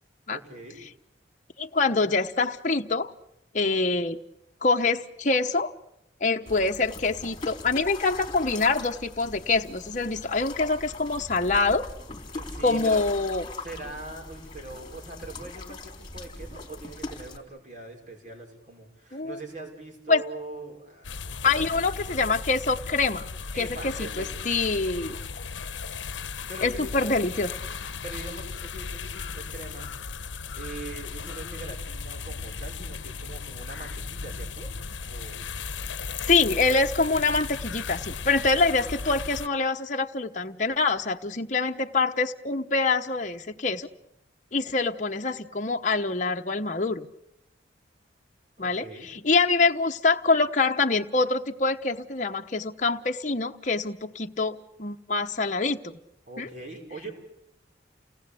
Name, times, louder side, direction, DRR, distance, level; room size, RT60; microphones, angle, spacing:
voice 1, 0.3-0.8 12.3-13.0 13.6-21.7 23.5-24.3 26.5-26.9 28.0-29.9 30.5-34.7 35.1-35.5 48.6-49.1 56.3-57.1, right 2 dB, 45° right, 1 dB, 5.6 m, -42 dB
voice 2, 1.6-3.1 3.5-4.2 4.6-5.7 6.2-11.9 12.6-13.5 19.1-19.4 20.1-20.2 21.4-23.3 23.6-25.2 26.6-27.5 36.2-43.9 44.5-47.1 48.6-55.8 56.4-56.5, left 3 dB, 40° left, 4 dB, 1.1 m, -25 dB
sound 1, 6.5-17.4, left 2 dB, 25° left, 3.5 m, -41 dB
sound 2, 21.0-39.5, left 5 dB, 85° left, 0.9 m, -36 dB
29.5 x 19.5 x 8.5 m, 0.83 s
head